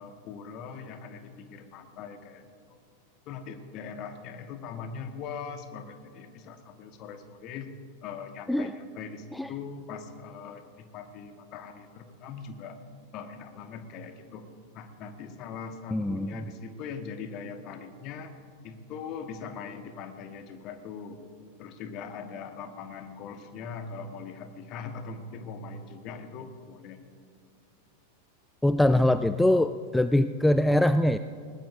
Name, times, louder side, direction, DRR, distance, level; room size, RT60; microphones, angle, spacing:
voice 1, 0.0-2.4 2.7-2.8 3.3-7.7 8.0-12.8 13.1-14.5 14.7-18.3 18.6-21.2 21.6-27.0, left 5 dB, 40° left, 7 dB, 1.3 m, -41 dB
voice 2, 15.9-16.4 28.6-31.2, left 1 dB, 5° left, 12 dB, 0.3 m, -23 dB
20.0 x 19.5 x 2.6 m, 2.2 s
figure-of-eight pair, 90°, 0 cm